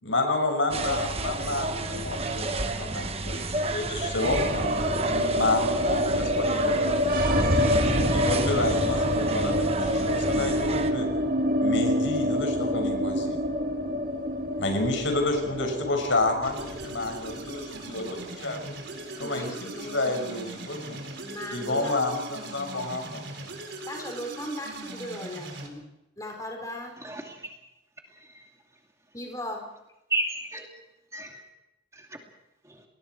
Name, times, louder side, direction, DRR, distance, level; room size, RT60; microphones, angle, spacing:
voice 1, 0.0-7.2 8.1-11.1 11.6-13.4 14.6-18.8 19.2-19.5 19.9-21.0 21.5-23.5, left 2 dB, 85° left, 6.0 m, -30 dB
sound 1, 0.7-10.9, right 2 dB, 30° right, 1.3 m, -31 dB
sound 2, 4.2-20.3 20.6-20.7 20.9-21.7, equal, 45° right, 2.4 m, -27 dB
sound 3, 16.4-25.7, right 2 dB, 70° right, 4.4 m, -40 dB
voice 2, 19.2-20.3 21.2-22.6 23.8-25.8 26.2-26.9 29.1-29.7, left 1 dB, 20° left, 4.8 m, -38 dB
voice 3, 27.0-27.6 28.1-28.5 30.1-30.7 31.1-31.4 31.9-32.1 32.7-32.8, right 2 dB, 15° right, 2.4 m, -33 dB
30.0 x 21.0 x 4.7 m
head